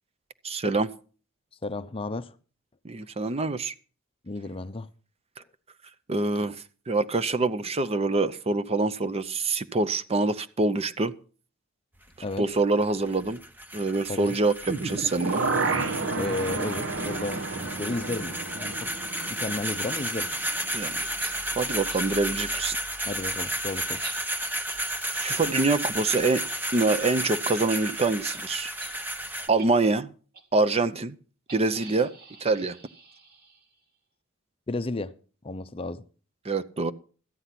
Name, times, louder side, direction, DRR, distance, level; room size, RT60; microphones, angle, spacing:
voice 1, 0.4-0.9 2.8-3.7 6.1-11.1 12.4-13.4 13.7-15.5 20.7-21.0 21.6-22.8 25.1-26.4 26.7-28.7 29.5-30.1 30.5-31.2 31.5-32.1 32.4-32.8 36.4-36.9, right 3 dB, 30° right, 0.6 m, -25 dB
voice 2, 1.6-2.3 4.2-4.9 12.2-12.5 14.1-14.3 16.2-17.4 17.8-18.9 19.3-20.3 23.0-24.0 34.7-35.1 35.4-36.0, left 2 dB, 25° left, 0.6 m, -33 dB
sound 1, 11.9-29.5, right 1 dB, 10° right, 0.9 m, -33 dB
sound 2, 14.6-20.7 21.0-21.1, right 3 dB, 65° right, 1.3 m, -31 dB
sound 3, 21.0-21.3 21.9-22.0 22.5-22.6 23.0-27.0 27.3-27.6 27.9-28.0 28.3-28.4 28.8-28.9 29.4-29.7 30.3-30.4 31.5-33.8, right 4 dB, 50° right, 2.2 m, -48 dB
13.5 x 9.7 x 5.8 m
head